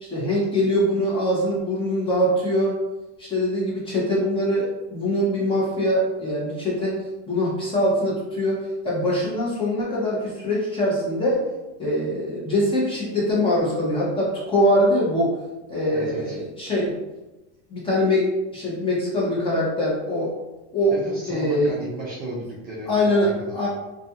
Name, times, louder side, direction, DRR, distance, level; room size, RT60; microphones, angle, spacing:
voice 1, 0.0-2.7 3.2-6.9 7.3-8.6 8.8-11.4 11.8-15.3 15.7-16.9 17.7-18.3 18.5-20.3 20.7-20.9 21.3-21.7 22.9-23.3 23.5-23.7, left 1 dB, 15° left, -6 dB, 0.7 m, -23 dB
voice 2, 15.9-16.4 20.9-23.6, right 1 dB, 30° right, -5 dB, 0.4 m, -35 dB
2.4 x 2.3 x 2.7 m, 1.0 s
supercardioid pair, 155°, 34 cm